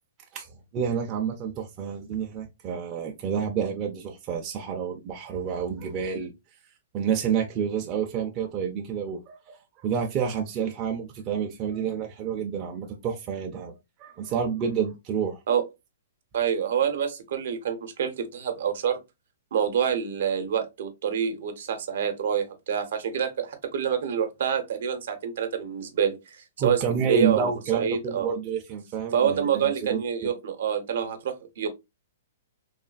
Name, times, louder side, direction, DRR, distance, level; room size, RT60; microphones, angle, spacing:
voice 1, 0.7-6.3 6.9-13.7 14.0-15.4 26.6-30.3, right 7 dB, 25° right, 0.4 m, -29 dB
voice 2, 16.3-19.0 19.5-28.3 29.1-31.7, right 8 dB, 65° right, 0.7 m, -27 dB
3.1 x 2.3 x 2.3 m
hypercardioid pair, 160°, 0 cm